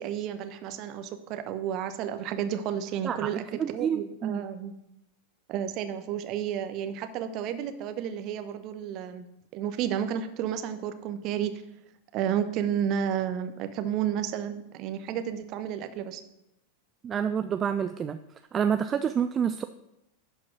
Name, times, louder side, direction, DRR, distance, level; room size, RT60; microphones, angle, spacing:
voice 1, 0.0-4.7 5.5-9.2 9.5-11.5 12.1-16.2, right 9 dB, 40° right, 9 dB, 0.9 m, -31 dB
voice 2, 3.0-4.4 17.0-18.2 18.5-19.6, right 8 dB, 25° right, 10 dB, 0.4 m, -28 dB
11.5 x 4.7 x 6.3 m, 0.87 s
figure-of-eight pair, 90°, 0 cm